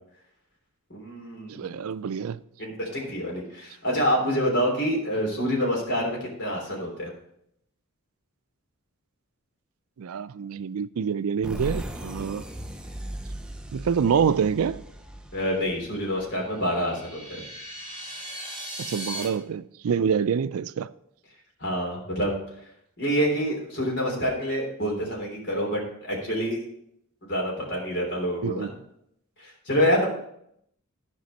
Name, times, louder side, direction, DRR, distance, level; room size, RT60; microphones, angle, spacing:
voice 1, 0.9-1.9 2.6-7.1 15.3-17.4 21.6-22.4 23.0-26.6 27.2-28.7 29.4-30.1, equal, 55° left, 3.4 m, -27 dB
voice 2, 1.5-2.4 10.0-12.4 13.7-14.8 18.8-20.9 28.4-28.7, right 7 dB, 75° right, 0.4 m, -26 dB
sound 1, 11.4-16.9, right 1 dB, 5° right, 0.7 m, -38 dB
sound 2, 16.5-19.2, equal, 25° right, 4.8 m, -38 dB
13.0 x 5.1 x 5.3 m
head